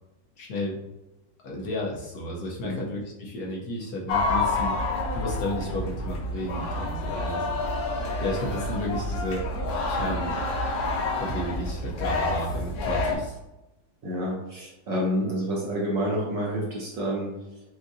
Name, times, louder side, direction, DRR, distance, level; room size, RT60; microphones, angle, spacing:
voice 1, 0.4-0.8 1.4-4.8 5.1-7.5 8.2-9.5 9.9-10.3 11.2-13.4, left 1 dB, 65° left, -1 dB, 1.1 m, -32 dB
sound 1, 4.1-13.1, left 2 dB, 80° left, 1.7 m, -28 dB
voice 2, 14.0-17.6, equal, 55° right, -4 dB, 1.0 m, -29 dB
6.1 x 2.6 x 2.6 m, 0.93 s
omnidirectional pair, 2.1 m